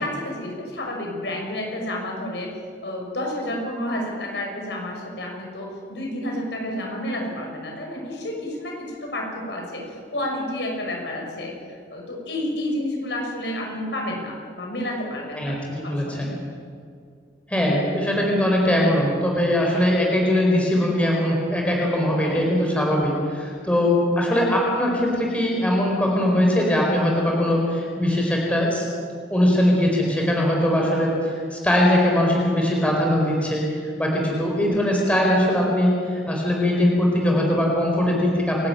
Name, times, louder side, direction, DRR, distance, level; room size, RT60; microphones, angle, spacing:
voice 1, 0.0-2.6 2.8-11.5 11.9-15.6 15.8-16.3 22.2-22.4, left 1 dB, 75° left, 0 dB, 6.0 m, -30 dB
voice 2, 15.3-16.3 17.5-28.8 29.3-31.1 31.5-38.7, left 1 dB, 5° left, -2 dB, 4.8 m, -21 dB
28.0 x 12.5 x 9.2 m, 2.2 s
head